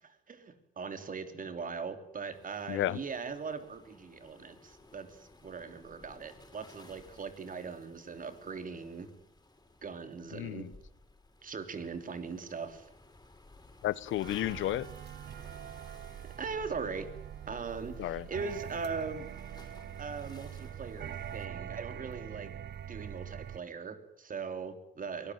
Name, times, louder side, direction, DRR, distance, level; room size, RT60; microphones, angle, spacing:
voice 1, 0.0-9.1 9.8-10.7 11.4-12.9 16.4-17.1 17.5-19.3 20.0-22.5 22.9-25.3, right 5 dB, 45° right, 9 dB, 3.3 m, -40 dB
Waves surf, 2.3-21.4, left 2 dB, 20° left, 6.6 m, -58 dB
voice 2, 2.7-3.0 10.3-10.7 13.8-14.9 18.0-18.3, left 14 dB, 80° left, 19 dB, 0.9 m, -32 dB
sound 1, 14.2-23.6, right 9 dB, 60° right, 0.8 m, -43 dB
23.0 x 18.5 x 9.3 m, 0.77 s
cardioid pair, 90°, 20 cm